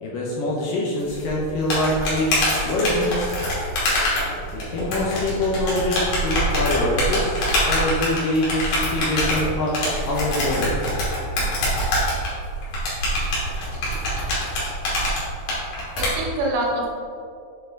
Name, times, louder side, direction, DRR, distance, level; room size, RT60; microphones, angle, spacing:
voice 1, 0.0-3.3 4.5-9.8 10.1-10.7, left 1 dB, 70° left, -3 dB, 2.3 m, -24 dB
sound 1, 1.1-16.1, left 1 dB, 55° left, 3.8 m, -24 dB
voice 2, 15.7-16.9, right 1 dB, 85° right, -3 dB, 3.9 m, -26 dB
8.9 x 7.1 x 3.9 m, 2.4 s
omnidirectional pair, 4.9 m